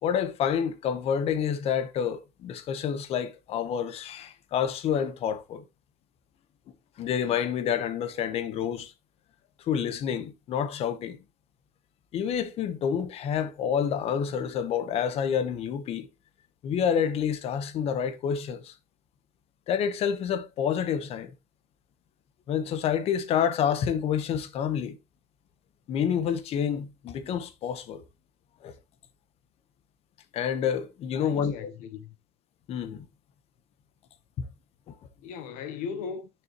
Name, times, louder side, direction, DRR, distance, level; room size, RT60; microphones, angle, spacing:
voice 1, 0.0-5.6 7.0-8.9 9.7-11.2 12.1-16.1 16.6-18.7 19.7-21.3 22.5-25.0 25.9-28.0 28.6-28.7 30.3-31.7 32.7-33.0 34.4-34.5 34.9-35.0, left 8 dB, 50° left, 1.2 m, -28 dB
voice 2, 31.1-32.1 35.2-36.3, left 6 dB, 75° left, 1.0 m, -38 dB
10.0 x 6.9 x 3.1 m
cardioid pair, 155°, 13 cm